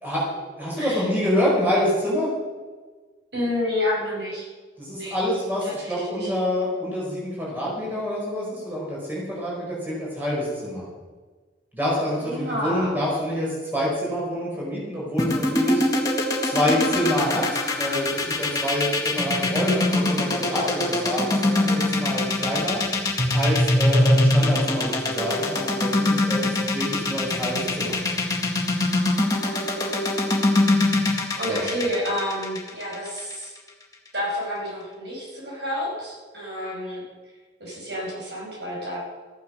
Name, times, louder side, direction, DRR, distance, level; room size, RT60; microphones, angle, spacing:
voice 1, 0.0-2.3 4.8-10.8 11.7-15.8 16.4-17.4 17.8-22.8 23.3-28.0 31.5-31.6, equal, 10° right, -5 dB, 5.0 m, -27 dB
voice 2, 3.3-4.5 5.0-5.2 5.7-6.3 12.2-13.0 31.2-33.5 34.1-37.0 37.6-39.0, left 1 dB, 65° right, -3 dB, 5.8 m, -29 dB
sound 1, 15.2-33.3, left 2 dB, 20° left, 1.8 m, -22 dB
14.0 x 11.0 x 6.4 m, 1.4 s
head